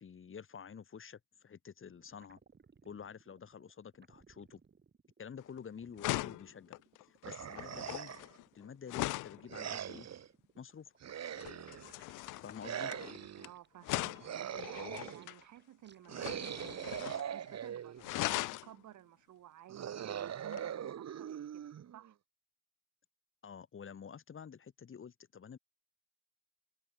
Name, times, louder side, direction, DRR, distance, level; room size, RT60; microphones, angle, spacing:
voice 1, 0.0-2.4 2.8-4.6 5.2-6.8 7.1-8.1 8.6-10.1 10.6-10.9 12.4-12.9 23.4-25.6, left 7 dB, 45° left, 2.4 m, -49 dB
sound 1, 1.8-17.1, right 5 dB, 35° right, 6.3 m, -65 dB
sound 2, 5.4-5.6 6.0-9.4 11.4-13.5 13.8-15.4 16.1-17.3 17.6-17.7 18.0-18.7 20.5-20.7, left 19 dB, 90° left, 0.6 m, -40 dB
sound 3, 7.2-8.4 9.5-10.3 11.0-11.9 12.6-13.5 14.2-15.3 16.1-18.1 19.7-22.1, right 9 dB, 60° right, 3.4 m, -41 dB
voice 2, 13.4-16.9 17.3-22.2, right 12 dB, 75° right, 2.6 m, -54 dB
cardioid pair, 90°, 30 cm